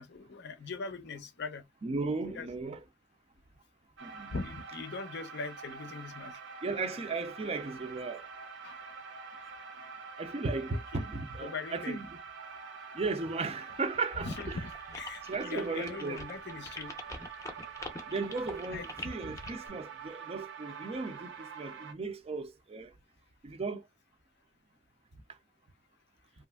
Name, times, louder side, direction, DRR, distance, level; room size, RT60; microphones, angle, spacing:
voice 1, 0.0-1.6 2.3-2.8 4.3-6.4 8.6-8.8 10.7-11.0 11.4-12.0 14.2-16.9 18.7-18.9 19.2-19.4, left 4 dB, 60° left, 0.5 m, -41 dB
voice 2, 1.8-2.8 4.0-4.3 6.6-8.3 10.2-12.2 12.9-14.6 15.2-16.2 18.1-22.9 23.4-23.8, right 3 dB, 30° right, 0.4 m, -36 dB
sound 1, 4.0-21.9, right 6 dB, 65° right, 0.7 m, -46 dB
sound 2, 14.3-19.7, left 2 dB, 15° left, 0.6 m, -44 dB
3.0 x 2.4 x 2.2 m
head